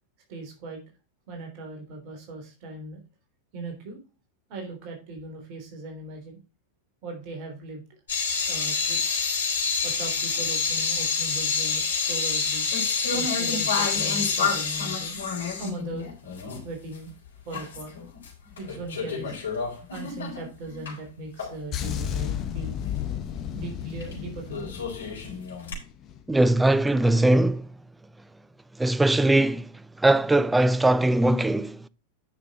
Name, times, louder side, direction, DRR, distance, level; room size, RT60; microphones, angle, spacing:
voice 1, 0.3-0.8 1.3-3.0 3.5-4.0 4.5-6.4 7.0-7.8 8.5-9.0 9.8-12.7 13.1-15.2 15.6-16.1 16.6-17.1 17.4-17.9 18.6-19.4 19.9-22.8 23.5-24.7, right 2 dB, 45° right, 3.4 m, -38 dB
sound 1, 8.1-16.7 17.0-17.1 17.5-18.3 18.6-20.9 21.4-21.5 24.0-24.1 24.5-25.7, left 5 dB, 65° left, 4.2 m, -27 dB
sound 2, 21.7-26.3 26.5-26.8, left 9 dB, 30° left, 1.3 m, -33 dB
voice 2, 26.3-27.6 28.8-29.6 30.0-31.8, right 1 dB, 5° right, 0.5 m, -20 dB
9.7 x 6.1 x 4.1 m
figure-of-eight pair, 90°, 0 cm